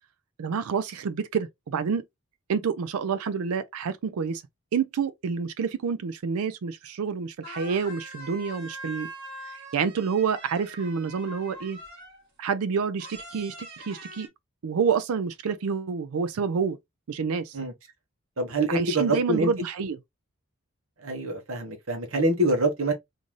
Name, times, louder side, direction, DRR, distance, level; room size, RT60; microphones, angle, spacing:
voice 1, 0.4-2.0 2.5-4.4 4.7-9.1 9.4-11.8 12.4-14.3 14.6-16.8 17.1-17.6 18.7-20.0, right 6 dB, 90° right, 0.4 m, -28 dB
sound 1, 7.1-7.2 7.4-12.3 13.0-14.3, right 1 dB, 50° right, 1.6 m, -43 dB
voice 2, 18.4-19.5 21.0-22.9, right 1 dB, 75° right, 1.0 m, -25 dB
3.8 x 2.6 x 3.0 m
head